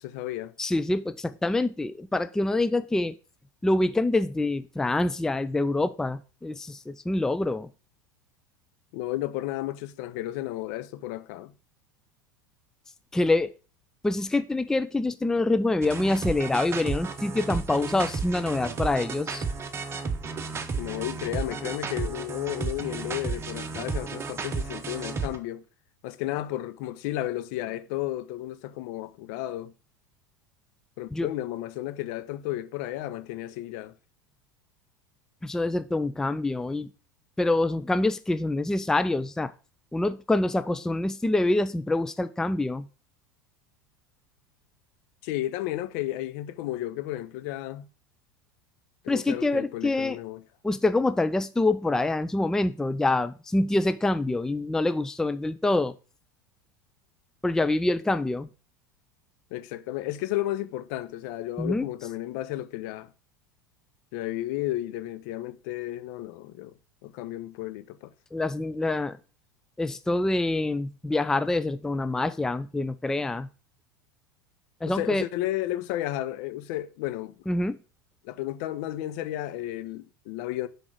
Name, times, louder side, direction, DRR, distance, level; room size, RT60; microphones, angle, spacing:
voice 1, 0.0-0.5 8.9-11.5 20.7-25.6 26.0-29.7 31.0-33.9 45.2-47.9 49.0-50.4 59.5-63.1 64.1-66.7 67.0-68.1 74.8-77.3 78.2-80.7, left 15 dB, 55° left, 0.6 m, -33 dB
voice 2, 0.6-3.1 3.6-7.7 13.1-13.5 14.0-19.4 31.1-31.3 35.4-36.9 37.4-39.5 39.9-42.9 49.1-50.2 50.6-55.9 57.4-58.5 61.6-61.9 68.3-69.2 69.8-73.5 74.8-75.2 77.5-77.8, left 2 dB, 5° left, 0.4 m, -26 dB
sound 1, 15.8-25.4, right 4 dB, 25° right, 1.0 m, -33 dB
6.1 x 4.9 x 6.4 m
figure-of-eight pair, 80°, 11 cm